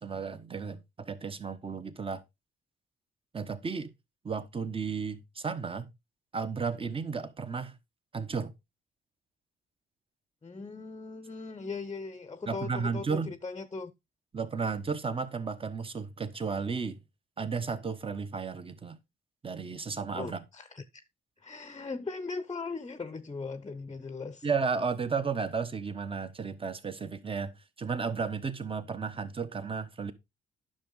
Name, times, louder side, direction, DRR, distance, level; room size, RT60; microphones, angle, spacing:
voice 1, 0.0-2.2 3.3-3.9 4.2-5.9 6.3-7.7 8.1-8.5 12.5-13.3 14.3-17.0 17.4-19.0 19.4-20.4 24.4-27.5 27.8-30.1, right 5 dB, 25° right, 1.2 m, -33 dB
voice 2, 10.4-13.9 20.1-21.0 21.4-24.5, left 4 dB, 20° left, 0.8 m, -39 dB
10.0 x 6.2 x 3.9 m
cardioid pair, 90°, 20 cm